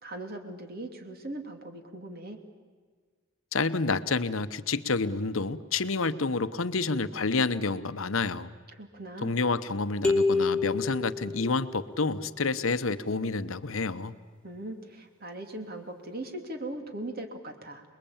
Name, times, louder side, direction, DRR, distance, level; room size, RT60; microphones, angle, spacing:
voice 1, 0.0-2.4 8.8-9.3 14.4-17.8, right 1 dB, 45° right, 5 dB, 2.8 m, -39 dB
voice 2, 3.5-8.5 9.2-14.1, left 3 dB, 75° left, 13 dB, 1.0 m, -29 dB
sound 1, 10.0-11.9, left 3 dB, 5° left, 2.3 m, -27 dB
28.0 x 21.0 x 8.7 m, 1.6 s
head